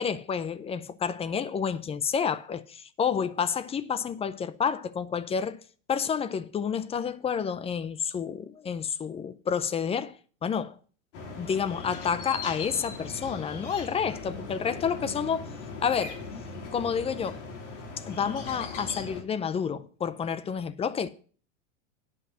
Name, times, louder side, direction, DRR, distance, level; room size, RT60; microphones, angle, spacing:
voice 1, 0.0-5.6 5.9-10.8 11.4-15.5 15.8-16.2 16.7-17.4 18.1-21.1, left 7 dB, 15° left, 0.5 m, -29 dB
sound 1, 11.1-19.2, left 3 dB, 75° left, 3.0 m, -39 dB
9.7 x 5.4 x 7.7 m
hypercardioid pair, 110°, 37 cm